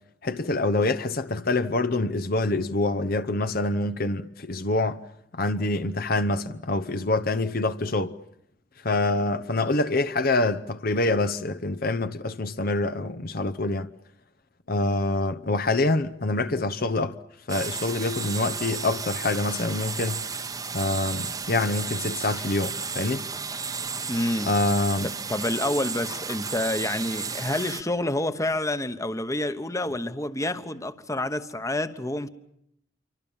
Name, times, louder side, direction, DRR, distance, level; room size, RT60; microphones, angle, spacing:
voice 1, 0.2-5.0 5.3-8.2 8.8-13.9 14.7-17.2 17.5-20.2 20.7-23.3 24.4-25.1, left 2 dB, 55° left, 0.9 m, -26 dB
sound 1, 17.5-27.8, right 5 dB, 20° right, 1.0 m, -33 dB
voice 2, 24.1-24.5 25.3-32.3, left 1 dB, 15° left, 1.2 m, -28 dB
27.5 x 24.5 x 7.3 m
head